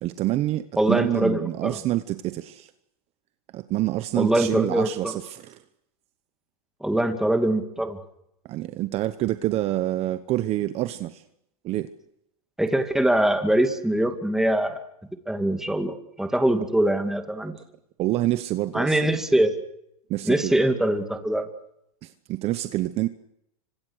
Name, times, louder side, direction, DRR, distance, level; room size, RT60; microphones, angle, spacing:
voice 1, 0.0-2.7 3.5-5.6 8.5-11.2 11.6-11.9 18.0-19.2 20.1-20.6 22.0-23.1, right 15 dB, 35° right, 1.0 m, -27 dB
voice 2, 0.8-1.8 4.2-5.1 6.8-8.0 12.6-14.8 15.3-17.6 18.7-19.5 20.2-21.5, right 1 dB, ahead, 2.3 m, -23 dB
28.0 x 25.5 x 6.5 m
supercardioid pair, 135°, 19 cm